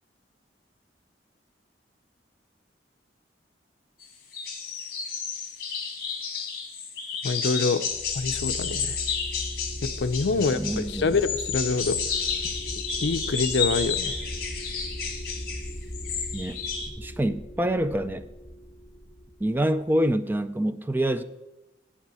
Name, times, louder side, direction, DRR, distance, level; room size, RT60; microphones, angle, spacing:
sound 1, 4.0-4.1 4.3-16.9, left 6 dB, 55° left, 1.9 m, -31 dB
voice 1, 7.2-7.8 8.1-9.0 9.8-12.4 13.0-14.2, left 4 dB, 70° left, 11 dB, 0.6 m, -26 dB
sound 2, 7.9-20.1, equal, 35° left, 1.1 m, -39 dB
voice 2, 10.4-11.2 16.3-16.6 17.0-18.3 19.4-21.2, right 1 dB, 10° right, 12 dB, 0.3 m, -26 dB
8.4 x 5.8 x 7.6 m, 0.99 s
head